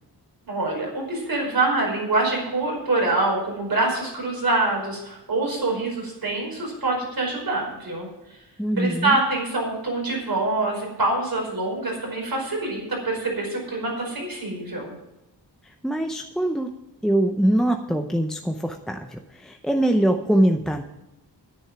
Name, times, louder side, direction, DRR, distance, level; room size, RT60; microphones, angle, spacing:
voice 1, 0.4-8.1 8.8-14.9, right 2 dB, 55° right, 0 dB, 5.0 m, -25 dB
voice 2, 8.6-9.2 15.6-16.7 17.0-20.8, right 1 dB, ahead, 4 dB, 0.6 m, -23 dB
10.5 x 10.0 x 5.9 m, 0.94 s
wide cardioid pair, 140°, 42 cm